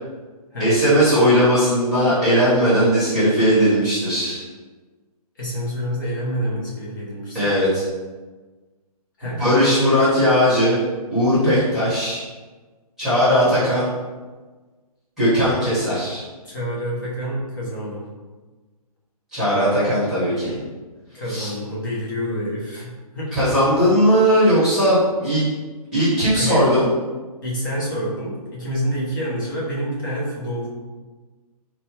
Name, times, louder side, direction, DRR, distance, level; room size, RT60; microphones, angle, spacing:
voice 1, 0.6-4.4 7.3-7.8 9.4-10.8 11.1-12.2 13.0-13.9 15.2-16.2 19.3-20.6 21.3-21.5 23.3-25.4 25.9-26.9, equal, ahead, -14 dB, 1.0 m, -18 dB
voice 2, 5.4-7.5 9.2-10.2 11.6-11.8 13.4-13.6 16.4-18.1 21.1-23.5 26.3-26.7 27.4-30.7, equal, 30° left, -5 dB, 0.9 m, -27 dB
4.2 x 2.2 x 2.8 m, 1.3 s
hypercardioid pair, 170°, 20 cm